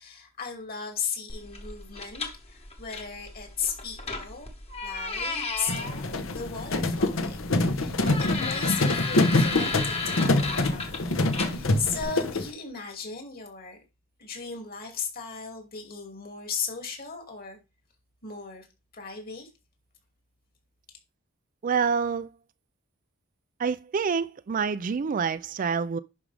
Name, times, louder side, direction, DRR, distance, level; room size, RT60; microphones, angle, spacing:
voice 1, 0.0-4.5 4.8-13.8 14.2-17.6 18.2-18.7 18.9-19.5, left 6 dB, 45° left, 2.5 m, -36 dB
sound 1, 1.3-12.0, left 3 dB, 30° left, 1.5 m, -35 dB
sound 2, 5.7-12.5, left 2 dB, 70° left, 1.1 m, -25 dB
voice 2, 21.6-22.3 23.6-26.0, right 6 dB, 40° right, 0.4 m, -27 dB
11.0 x 5.2 x 3.4 m
head